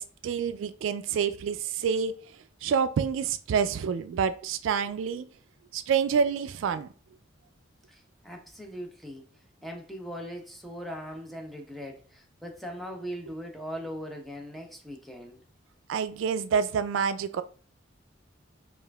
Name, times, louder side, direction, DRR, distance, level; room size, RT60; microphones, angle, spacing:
voice 1, 0.0-2.2 2.6-5.3 5.7-6.9 15.9-17.4, right 6 dB, 75° right, 0.3 m, -27 dB
voice 2, 7.9-9.3 9.6-15.4, equal, ahead, 0.6 m, -40 dB
5.4 x 2.5 x 2.3 m
head